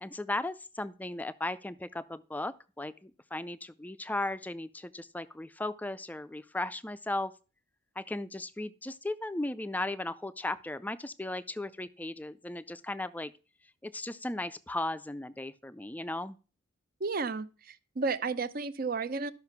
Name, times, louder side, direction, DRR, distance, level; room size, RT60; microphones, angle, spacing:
voice 1, 0.0-7.3 8.0-13.3 13.8-16.4, left 2 dB, 10° left, 0.4 m, -36 dB
voice 2, 17.0-19.3, right 4 dB, 45° right, 0.6 m, -32 dB
12.5 x 5.7 x 5.9 m
head